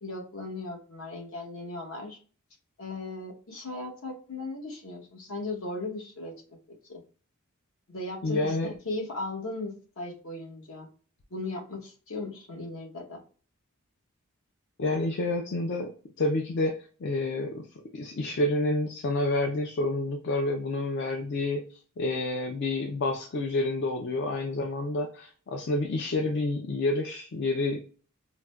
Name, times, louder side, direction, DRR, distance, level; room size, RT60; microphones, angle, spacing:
voice 1, 0.0-2.2 2.8-6.6 6.9-7.0 7.9-10.9 11.3-13.2, left 2 dB, 70° left, 1 dB, 1.0 m, -37 dB
voice 2, 8.2-8.7 14.8-15.9 16.2-16.7 17.0-17.7 17.9-27.8, left 2 dB, 50° left, 3 dB, 0.4 m, -29 dB
4.7 x 2.1 x 2.2 m, 0.40 s
head